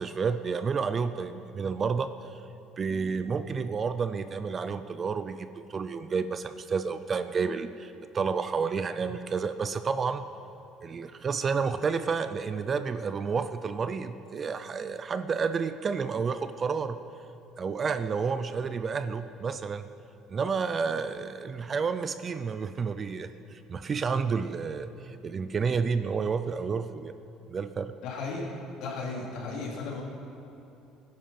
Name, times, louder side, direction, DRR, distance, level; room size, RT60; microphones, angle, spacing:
voice 1, 0.0-2.4 2.8-10.2 10.8-17.0 17.6-19.9 20.3-27.1 27.5-27.9, right 5 dB, 25° right, 11 dB, 0.4 m, -30 dB
voice 2, 28.0-28.4 28.8-30.0, left 3 dB, 60° left, -2 dB, 3.3 m, -35 dB
19.5 x 10.5 x 5.8 m, 2.9 s
cardioid pair, 175°, 0 cm